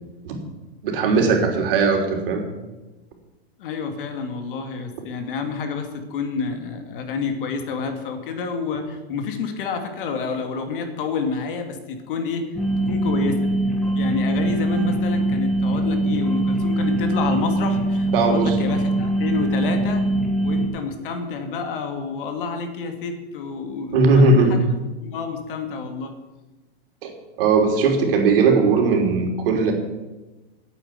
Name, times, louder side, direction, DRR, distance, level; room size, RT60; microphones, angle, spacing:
voice 1, 0.8-2.4 18.1-18.6 23.9-24.6 27.0-27.1 27.4-29.7, right 3 dB, 60° right, 2 dB, 3.4 m, -18 dB
voice 2, 3.6-12.6 12.9-13.4 13.9-20.0 20.4-24.6 25.0-26.1, left 5 dB, 55° left, 6 dB, 2.3 m, -29 dB
sound 1, 12.5-20.7, right 1 dB, ahead, 1.4 m, -22 dB
9.4 x 8.6 x 9.3 m, 1.1 s
supercardioid pair, 160°, 32 cm